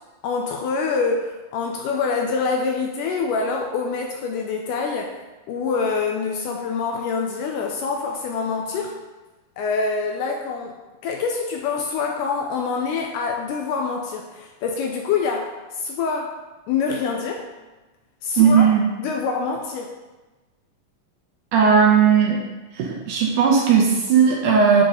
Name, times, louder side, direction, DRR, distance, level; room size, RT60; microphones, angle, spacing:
voice 1, 0.2-5.2 5.5-8.9 9.6-16.3 16.7-17.5 18.2-18.7 19.0-19.9, left 5 dB, 80° left, 1 dB, 2.0 m, -25 dB
voice 2, 18.4-18.8 21.5-22.4 22.7-24.8, right 6 dB, 70° right, -2 dB, 2.0 m, -16 dB
9.8 x 4.0 x 3.6 m, 1.1 s
omnidirectional pair, 4.1 m